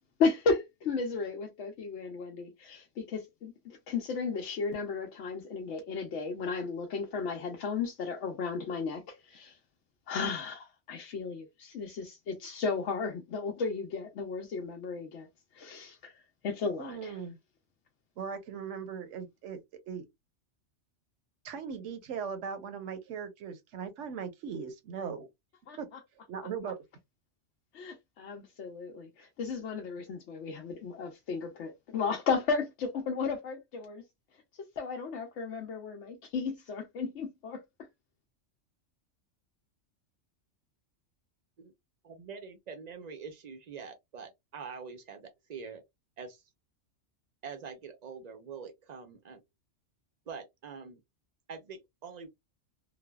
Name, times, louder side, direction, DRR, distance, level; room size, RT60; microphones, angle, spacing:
voice 1, 0.2-9.6 10.1-15.3 15.5-16.1 16.4-17.2 25.7-25.8 27.7-34.0 34.8-37.6, left 4 dB, 75° left, 0.9 m, -34 dB
voice 2, 16.8-17.4 18.2-19.6 19.9-20.1 21.4-25.3 25.8-25.9 26.3-26.8, right 6 dB, 80° right, 1.0 m, -39 dB
voice 3, 42.1-45.8 46.2-46.4 47.4-49.4 50.3-51.0 51.5-52.3, right 5 dB, 50° right, 0.5 m, -44 dB
3.2 x 2.0 x 2.2 m
omnidirectional pair, 1.3 m